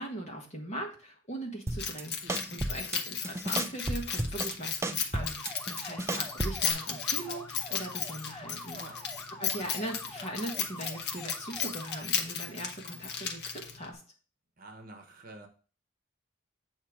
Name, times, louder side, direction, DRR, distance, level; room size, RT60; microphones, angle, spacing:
voice 1, 0.0-2.1 2.5-8.8 9.4-14.0, right 1 dB, 35° left, 0 dB, 1.5 m, -40 dB
sound 1, 1.7-2.0 2.3-3.0 3.2-4.5 4.8-6.7, right 2 dB, 15° right, 0.3 m, -33 dB
Keys jangling, 1.8-13.9, left 7 dB, 55° left, 0.9 m, -35 dB
sound 2, 5.1-12.0, left 2 dB, 10° left, 0.7 m, -46 dB
voice 2, 8.8-9.3 14.6-15.5, right 2 dB, 45° right, 4 dB, 1.0 m, -48 dB
7.4 x 2.9 x 4.9 m, 0.37 s
head